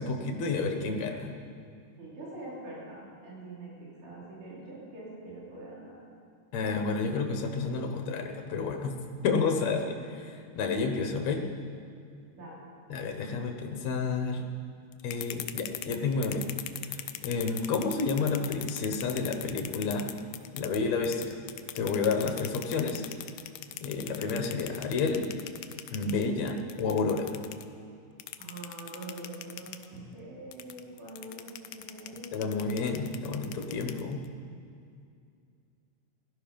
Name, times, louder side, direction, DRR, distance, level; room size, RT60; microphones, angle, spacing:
voice 1, 0.0-1.3 6.5-8.9 9.2-11.4 12.9-14.4 15.0-16.5 16.9-20.1 20.5-21.4 21.7-23.0 23.8-25.3 25.9-27.4 32.3-34.2, left 4 dB, 60° left, 4 dB, 2.3 m, -30 dB
voice 2, 2.0-6.0 12.3-12.6 28.4-32.3, right 2 dB, 65° right, -6 dB, 4.7 m, -44 dB
sound 1, 14.9-20.8 21.0-27.6 28.2-29.9 30.5-34.3, left 14 dB, 90° left, 1.6 m, -40 dB
16.5 x 12.5 x 5.3 m, 2.4 s
omnidirectional pair, 3.9 m